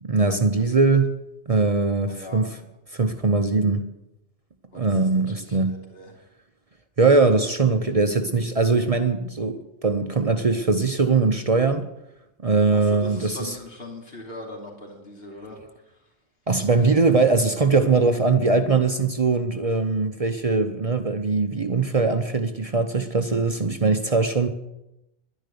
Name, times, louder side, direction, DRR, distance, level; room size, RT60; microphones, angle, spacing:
voice 1, 0.0-1.1 1.5-2.5 2.9-3.9 4.7-5.8 7.0-11.9 12.4-13.6 16.5-24.5, right 3 dB, 40° right, 7 dB, 0.7 m, -21 dB
voice 2, 2.1-2.4 4.7-4.8 5.1-6.1 12.7-15.6, left 1 dB, 60° left, 0 dB, 2.9 m, -40 dB
11.5 x 10.5 x 6.8 m, 0.90 s
omnidirectional pair, 1.2 m